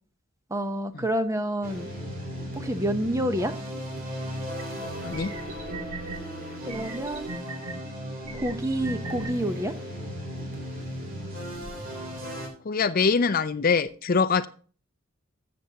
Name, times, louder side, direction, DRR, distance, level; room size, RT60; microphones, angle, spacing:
voice 1, 0.5-1.9 2.6-3.5 6.7-7.4 8.3-9.7, right 1 dB, 15° right, 0.7 m, -28 dB
sound 1, 1.6-12.5, equal, 40° right, 3.3 m, -36 dB
sound 2, 4.6-4.7 5.1-6.2 6.7-7.7 8.2-9.3, right 3 dB, 80° right, 2.0 m, -38 dB
voice 2, 12.6-14.5, left 5 dB, 45° left, 0.5 m, -23 dB
13.5 x 7.7 x 2.8 m
head